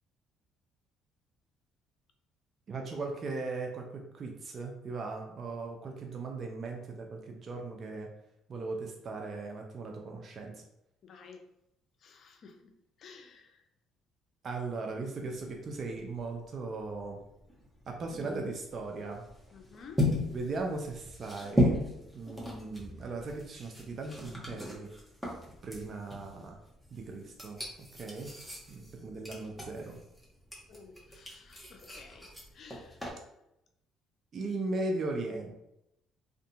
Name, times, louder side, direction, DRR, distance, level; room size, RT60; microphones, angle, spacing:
voice 1, 2.7-8.1 8.5-10.6 14.4-17.2 17.9-19.3 20.3-24.9 25.6-26.6 26.9-27.6 27.9-28.3 28.7-30.0 34.3-35.5, right 3 dB, 50° right, 2 dB, 0.5 m, -38 dB
voice 2, 11.0-11.5 12.0-12.7 13.0-13.6 19.5-20.1 30.7-32.3 32.5-33.0, left 5 dB, 60° left, 4 dB, 0.5 m, -52 dB
sound 1, 15.2-33.1, left 1 dB, 5° right, 1.0 m, -37 dB
2.6 x 2.5 x 2.3 m, 0.82 s
supercardioid pair, 65°, 0 cm